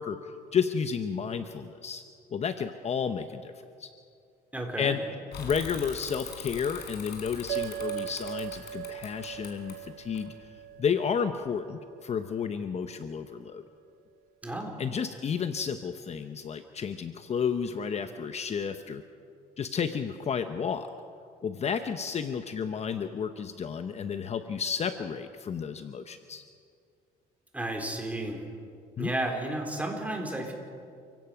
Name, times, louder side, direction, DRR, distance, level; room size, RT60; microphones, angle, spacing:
voice 1, 0.0-2.0 2.3-3.5 3.8-3.9 4.8-5.1 5.4-10.5 10.8-13.6 14.8-19.0 19.6-20.9 21.4-26.4 29.0-29.1, left 6 dB, 40° left, 9 dB, 0.9 m, -32 dB
voice 2, 4.5-4.9 14.4-14.8 27.5-28.4 29.0-30.5, right 1 dB, 10° right, 1 dB, 4.2 m, -32 dB
Bicycle / Mechanisms, 5.3-10.8, left 6 dB, 75° left, 4.2 m, -43 dB
sound 1, 7.5-12.2, right 13 dB, 90° right, 0.9 m, -39 dB
29.0 x 16.5 x 5.9 m, 2.3 s
cardioid pair, 110°, 17 cm